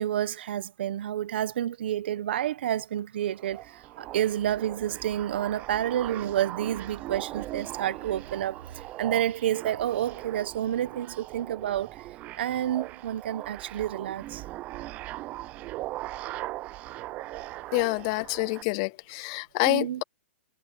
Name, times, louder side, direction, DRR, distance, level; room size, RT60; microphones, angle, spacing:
voice 1, 0.0-12.0 12.3-14.4 19.7-20.0, right 11 dB, 55° right, 1.1 m, -29 dB
sound 1, 3.3-18.6, right 17 dB, 20° right, 0.7 m, -40 dB
voice 2, 17.7-20.0, left 27 dB, 30° left, 0.4 m, -27 dB
hypercardioid pair, 165°, 7 cm